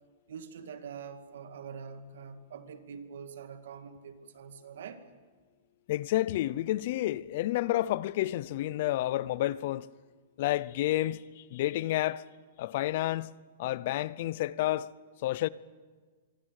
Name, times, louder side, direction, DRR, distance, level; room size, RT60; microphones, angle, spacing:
voice 1, 0.3-5.0, right 6 dB, 65° right, 2.2 m, -44 dB
voice 2, 5.9-9.9 10.4-12.2 12.6-13.3 13.6-14.9 15.2-15.5, left 15 dB, 40° left, 0.6 m, -30 dB
25.0 x 23.5 x 6.6 m
hypercardioid pair, 175°, 0 cm